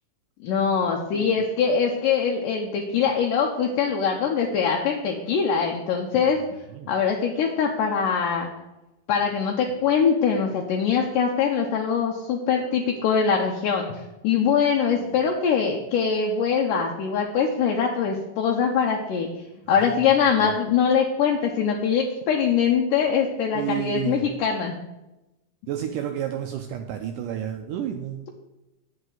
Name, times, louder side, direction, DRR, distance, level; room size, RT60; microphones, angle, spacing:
voice 1, 0.4-6.4 6.9-8.5 9.1-19.3 19.7-24.8, left 6 dB, 75° left, 0 dB, 2.2 m, -23 dB
voice 2, 1.1-1.5 6.7-6.9 14.9-15.3 19.7-20.5 23.5-24.2 25.7-28.3, right 10 dB, 85° right, 5 dB, 1.9 m, -32 dB
11.0 x 8.0 x 3.9 m, 0.98 s
omnidirectional pair, 4.3 m